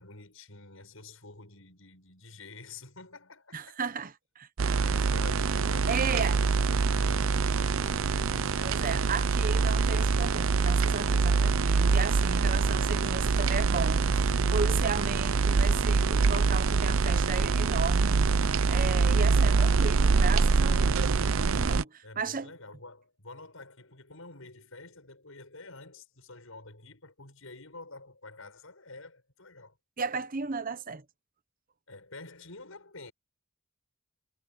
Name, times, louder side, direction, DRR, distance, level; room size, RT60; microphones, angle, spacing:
voice 1, 0.0-3.9 4.6-9.2 22.0-29.8 31.9-33.1, left 3 dB, 75° left, 7.8 m, -48 dB
voice 2, 3.5-5.1 5.9-6.4 8.6-22.5 30.0-31.0, right 5 dB, 40° right, 0.9 m, -35 dB
sound 1, 4.6-21.8, right 4 dB, 70° right, 0.6 m, -25 dB
head